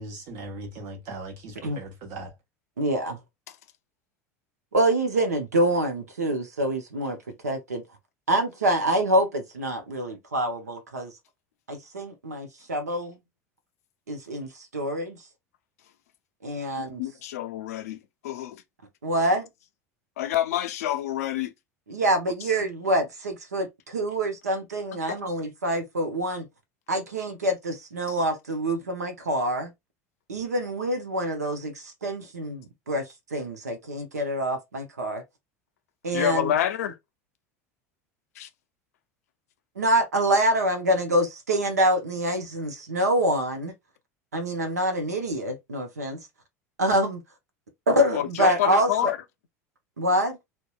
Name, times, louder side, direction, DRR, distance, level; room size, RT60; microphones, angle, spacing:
voice 1, 0.0-2.3, right 2 dB, 55° right, 1.0 m, -39 dB
voice 2, 2.8-3.2 4.7-7.2 7.4-7.8 8.3-11.1 11.7-13.1 14.1-15.2 16.4-17.0 19.0-19.5 21.9-26.5 26.9-29.7 30.3-35.2 36.0-36.5 39.8-43.7 44.3-46.2 46.8-47.2 47.9-49.1 50.0-50.4, right 1 dB, 90° right, 0.6 m, -26 dB
voice 3, 16.8-18.0 18.2-18.6 20.2-21.5 28.1-28.2 36.1-37.0 38.4-38.5 48.1-49.2, left 11 dB, 75° left, 0.4 m, -27 dB
2.7 x 2.1 x 2.3 m
hypercardioid pair, 80°, 8 cm